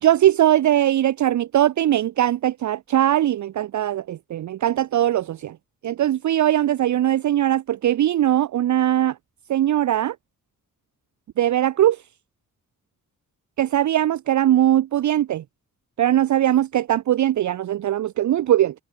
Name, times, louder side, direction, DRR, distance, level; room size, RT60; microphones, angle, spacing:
voice 1, 0.0-5.6 5.8-9.2 9.5-10.2 11.4-12.0 13.6-15.4 16.0-18.7, right 12 dB, 60° right, 0.4 m, -20 dB
cardioid pair, 75°, 34 cm